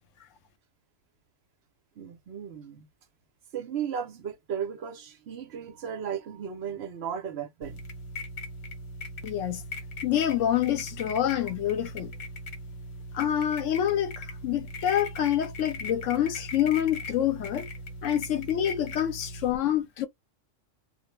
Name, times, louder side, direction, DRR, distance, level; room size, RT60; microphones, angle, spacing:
voice 1, 2.0-2.9 3.5-7.9, right 8 dB, 60° right, 0.8 m, -35 dB
sound 1, 7.6-19.5, left 1 dB, 60° left, 1.2 m, -39 dB
voice 2, 9.2-9.6 10.0-12.1 13.1-17.7 18.0-20.1, left 11 dB, 80° left, 1.0 m, -27 dB
2.3 x 2.1 x 3.0 m
omnidirectional pair, 1.3 m